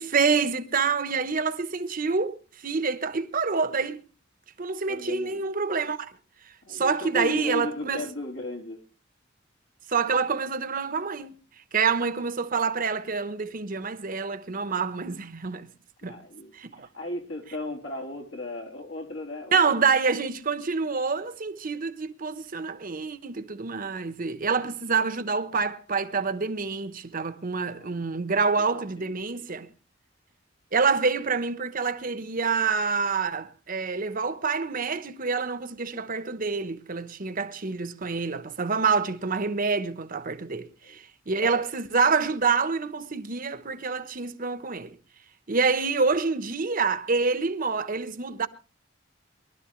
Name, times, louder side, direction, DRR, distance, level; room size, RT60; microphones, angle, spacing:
voice 1, 0.0-4.0 4.6-6.1 6.7-8.1 9.9-11.4 11.7-15.7 16.0-16.2 16.5-16.9 19.5-29.7 30.7-44.9 45.5-48.5, right 5 dB, 45° right, 1.0 m, -27 dB
voice 2, 4.9-5.4 6.7-8.8 16.0-19.8 27.7-28.1 28.6-28.7 29.0-29.5 40.8-41.0, left 1 dB, 75° left, 3.6 m, -36 dB
24.0 x 12.5 x 3.2 m
head